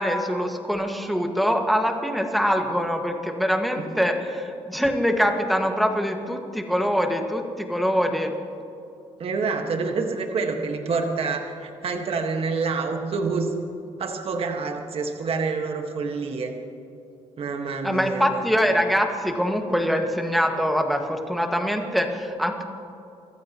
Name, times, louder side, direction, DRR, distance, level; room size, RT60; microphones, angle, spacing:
voice 1, 0.0-8.3 17.8-22.6, equal, ahead, 3 dB, 1.8 m, -24 dB
voice 2, 9.2-13.5 14.0-16.5 17.4-18.4, right 4 dB, 55° right, 3 dB, 1.7 m, -27 dB
25.0 x 14.0 x 3.1 m, 2.6 s
cardioid pair, 85°, 12 cm